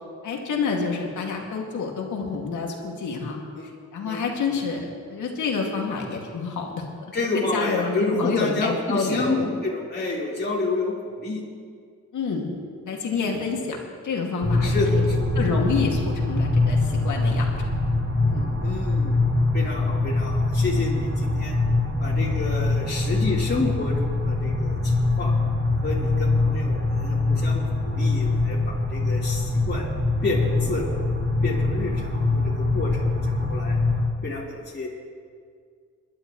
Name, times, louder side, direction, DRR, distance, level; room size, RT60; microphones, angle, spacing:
voice 1, 0.2-3.4 3.9-9.5 12.1-12.5 12.8-13.8 14.0-15.1 15.3-17.5 18.2-18.5, left 5 dB, 75° left, 0 dB, 2.4 m, -28 dB
voice 2, 7.1-11.4 13.2-13.4 14.6-15.2 18.6-19.2 19.5-21.6 22.0-25.3 25.8-29.9 30.2-31.1 31.4-33.8 34.2-34.9, left 2 dB, 35° left, -6 dB, 3.8 m, -29 dB
sound 1, 14.4-34.0, left 2 dB, 45° right, 2.7 m, -23 dB
22.0 x 11.5 x 3.2 m, 2.1 s
cardioid pair, 60°, 30 cm